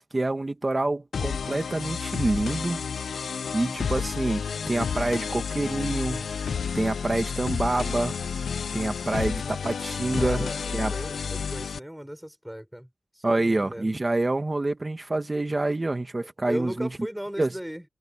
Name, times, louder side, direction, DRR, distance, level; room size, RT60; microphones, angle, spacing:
voice 1, 0.0-2.8 3.5-6.3 6.7-8.2 8.7-10.5 10.7-10.9 13.2-16.9 17.4-17.5, right 2 dB, 20° right, 1.7 m, -27 dB
sound 1, 1.1-11.8, left 6 dB, 80° left, 1.0 m, -31 dB
voice 2, 10.2-12.9 13.1-14.0 16.2-17.8, equal, 5° right, 5.3 m, -37 dB
wide cardioid pair, 150°, 0 cm